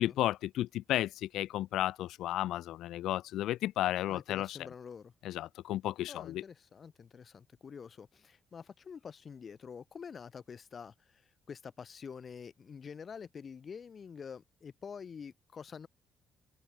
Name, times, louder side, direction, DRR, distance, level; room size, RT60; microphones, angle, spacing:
voice 1, 0.0-4.6 5.2-6.4, left 14 dB, 85° left, 1.2 m, -33 dB
voice 2, 4.1-5.1 6.1-11.2 11.5-15.9, left 6 dB, 45° left, 4.9 m, -47 dB
open air
cardioid pair, 90°, 0 cm